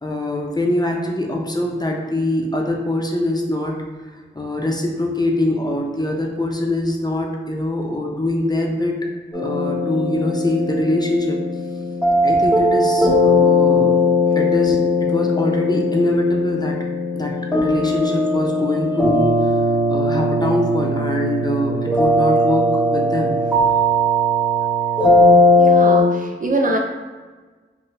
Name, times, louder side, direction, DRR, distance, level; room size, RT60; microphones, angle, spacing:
voice 1, 0.0-3.7 4.1-9.0 9.3-11.4 12.2-13.9 14.3-16.8 17.2-17.3 17.6-19.6 19.9-23.4, left 1 dB, 20° left, 0 dB, 0.6 m, -23 dB
sound 1, 9.3-26.0, left 1 dB, 5° right, 1.4 m, -18 dB
voice 2, 25.6-26.8, right 2 dB, 40° right, 1 dB, 0.4 m, -23 dB
3.8 x 2.1 x 2.7 m, 1.4 s
cardioid pair, 45°, 21 cm